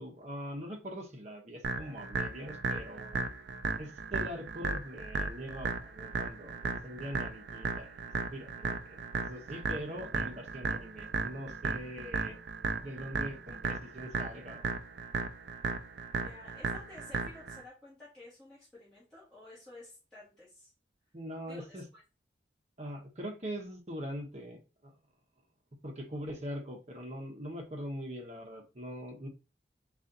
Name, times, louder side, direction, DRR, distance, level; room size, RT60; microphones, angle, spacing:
voice 1, 0.0-3.2 3.8-7.9 8.3-12.4 12.8-14.7 16.1-16.5 21.1-21.8 22.8-24.9 25.8-29.3, equal, 35° right, 1 dB, 0.9 m, -42 dB
sound 1, 1.6-17.6, right 4 dB, 70° right, 0.4 m, -36 dB
voice 2, 16.1-20.7 21.5-22.0, left 2 dB, 5° left, -10 dB, 1.5 m, -52 dB
4.0 x 2.5 x 3.8 m, 0.30 s
head